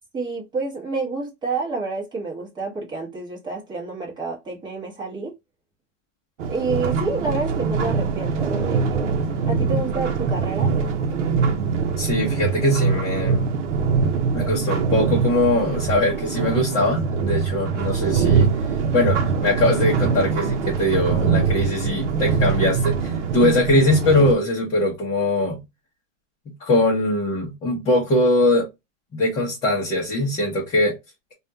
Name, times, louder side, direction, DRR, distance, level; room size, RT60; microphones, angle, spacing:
voice 1, 0.1-5.3 6.5-9.2 9.4-10.7, right 3 dB, 10° right, 1.0 m, -29 dB
sound 1, 6.4-24.3, right 5 dB, 70° right, 0.8 m, -23 dB
voice 2, 12.0-13.5 14.3-18.5 18.9-25.6 26.6-28.7 29.1-30.9, left 1 dB, 15° left, 0.9 m, -21 dB
3.4 x 2.4 x 2.7 m
hypercardioid pair, 155°, 37 cm